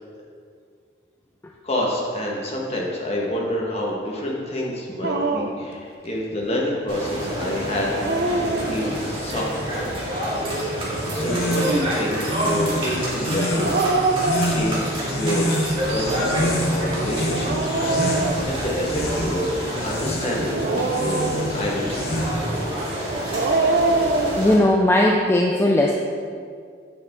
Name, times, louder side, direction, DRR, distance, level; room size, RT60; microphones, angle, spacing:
voice 1, 1.6-7.9 8.6-9.9 10.7-14.0 14.5-15.5 15.9-22.8, left 1 dB, 35° left, -3 dB, 1.4 m, -28 dB
Dog, 5.0-5.7 7.7-9.1 11.2-12.0 13.5-15.0 15.9-19.1 20.4-21.8 23.1-24.4, right 3 dB, 55° right, 0.6 m, -25 dB
sound 1, 6.9-24.5, right 1 dB, 30° right, 2.0 m, -28 dB
sound 2, 11.1-22.6, equal, 55° left, 1.0 m, -28 dB
voice 2, 24.4-25.9, left 1 dB, 15° left, -1 dB, 0.4 m, -18 dB
8.5 x 6.7 x 3.6 m, 2.1 s
head